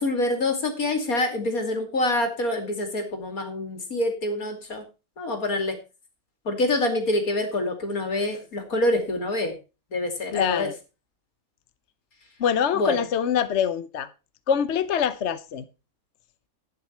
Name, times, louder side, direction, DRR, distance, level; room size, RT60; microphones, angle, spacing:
voice 1, 0.0-4.8 5.2-5.8 6.4-9.6 9.9-10.7 12.7-13.0, left 2 dB, 80° left, 3.1 m, -26 dB
voice 2, 10.3-10.7 12.4-14.1 14.5-15.6, left 8 dB, 60° left, 1.0 m, -24 dB
11.5 x 9.5 x 4.4 m
omnidirectional pair, 1.5 m